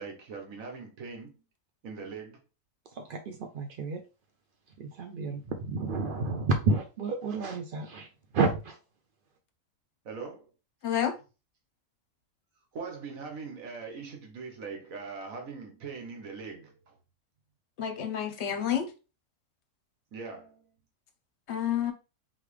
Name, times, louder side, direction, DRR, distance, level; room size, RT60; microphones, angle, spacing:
voice 1, 0.0-1.4 1.8-2.4 10.0-10.5 12.7-17.0 20.1-20.8, right 5 dB, 65° right, 1.5 m, -41 dB
voice 2, 3.0-4.0 4.8-8.1 8.3-8.8, right 3 dB, 80° right, 0.4 m, -30 dB
voice 3, 10.8-11.1 17.8-18.9 21.5-21.9, left 9 dB, 55° left, 0.9 m, -29 dB
4.1 x 3.3 x 3.2 m
omnidirectional pair, 1.6 m